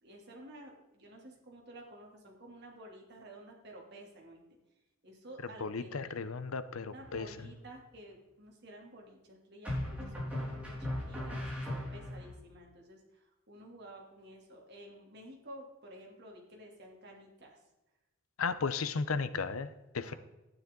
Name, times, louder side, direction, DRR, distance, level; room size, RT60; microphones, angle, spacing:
voice 1, 0.0-4.4 5.0-6.2 6.8-17.6 20.0-20.2, right 1 dB, 50° right, 0 dB, 2.8 m, -52 dB
voice 2, 5.6-7.3 18.4-20.1, left 4 dB, 85° left, 14 dB, 0.7 m, -35 dB
sound 1, 7.0-7.6 9.6-12.3, left 1 dB, 5° right, 4.8 m, -38 dB
12.0 x 9.9 x 3.8 m, 1.0 s
head